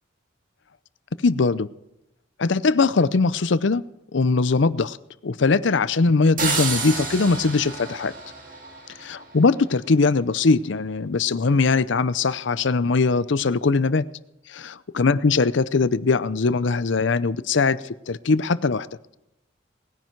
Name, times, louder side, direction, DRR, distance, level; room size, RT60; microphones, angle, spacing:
voice 1, 1.2-1.7 2.4-3.8 4.1-5.0 5.2-8.1 9.0-14.0 14.5-18.9, left 4 dB, 65° left, 17 dB, 0.6 m, -21 dB
sound 1, 6.4-9.2, right 4 dB, 40° right, 2.3 m, -29 dB
19.5 x 10.0 x 4.6 m, 0.89 s
head